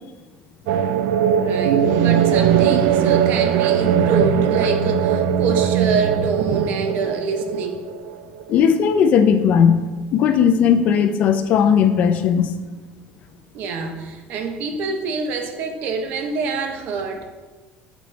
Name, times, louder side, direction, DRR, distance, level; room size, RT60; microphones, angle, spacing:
sound 1, 0.7-8.6, right 8 dB, 85° right, 0.3 m, -19 dB
voice 1, 1.4-7.8 13.5-17.3, right 4 dB, 55° right, 5 dB, 0.6 m, -26 dB
voice 2, 8.5-12.5, left 7 dB, 45° left, 9 dB, 0.4 m, -17 dB
7.8 x 4.1 x 3.1 m, 1.3 s
cardioid pair, 170°, 4 cm